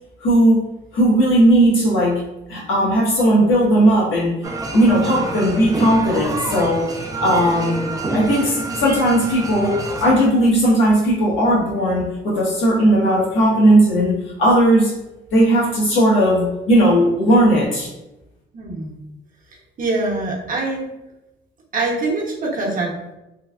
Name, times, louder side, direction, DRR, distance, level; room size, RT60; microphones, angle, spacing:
voice 1, 0.2-0.6 0.9-2.2 2.5-4.4 4.7-6.9 7.2-14.9 15.3-17.9, right 1 dB, 80° left, -5 dB, 1.2 m, -16 dB
sound 1, 4.4-10.1, right 2 dB, 15° right, 0.4 m, -28 dB
voice 2, 18.5-19.0 19.8-20.9 21.7-23.1, right 2 dB, 45° right, -2 dB, 0.8 m, -24 dB
3.3 x 2.2 x 2.3 m, 0.96 s
cardioid pair, 90°, 20 cm